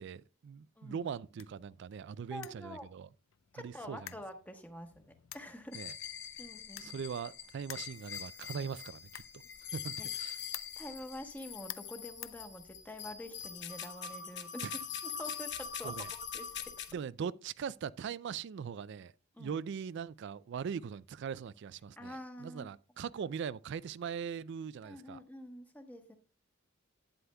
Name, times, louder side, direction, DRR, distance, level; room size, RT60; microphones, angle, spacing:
voice 1, 0.0-3.1 3.6-4.1 5.7-5.9 6.8-9.2 9.7-10.4 14.6-14.7 15.8-16.1 16.9-19.1 19.4-25.2, right 7 dB, 60° right, 0.3 m, -41 dB
sound 1, 0.8-13.1, left 14 dB, 90° left, 0.4 m, -53 dB
voice 2, 0.8-1.1 2.3-2.9 3.5-5.8 6.4-7.0 10.0-10.1 10.8-14.7 15.0-16.7 19.3-19.6 22.0-22.7 24.8-26.1, left 1 dB, 10° left, 1.1 m, -47 dB
sound 2, 5.7-16.9, left 7 dB, 60° left, 0.9 m, -43 dB
11.5 x 9.4 x 2.3 m
head